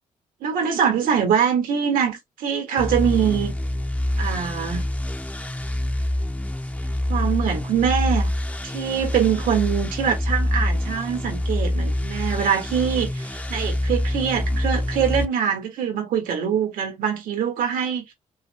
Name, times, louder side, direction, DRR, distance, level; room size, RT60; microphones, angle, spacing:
voice 1, 0.4-3.5 4.2-4.9 7.1-8.3 8.6-18.1, right 8 dB, 90° right, 1.7 m, -23 dB
sound 1, 2.8-15.3, left 1 dB, 10° left, 0.5 m, -26 dB
5.5 x 2.2 x 3.3 m
cardioid pair, 95°, 14 cm